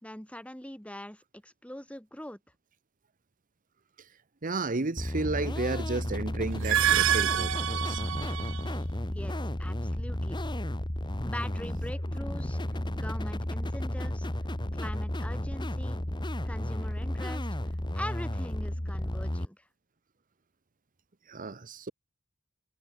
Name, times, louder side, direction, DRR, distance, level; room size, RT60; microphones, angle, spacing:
voice 1, 0.0-2.4 9.1-10.4 11.2-12.6 12.9-14.3 14.7-16.0 16.4-17.5 17.9-19.6, left 1 dB, 5° left, 3.0 m, -42 dB
voice 2, 4.4-8.0 21.3-21.9, right 3 dB, 40° right, 1.1 m, -33 dB
sound 1, 5.0-19.5, left 1 dB, 25° left, 1.7 m, -33 dB
sound 2, 6.5-8.8, right 11 dB, 65° right, 0.5 m, -27 dB
head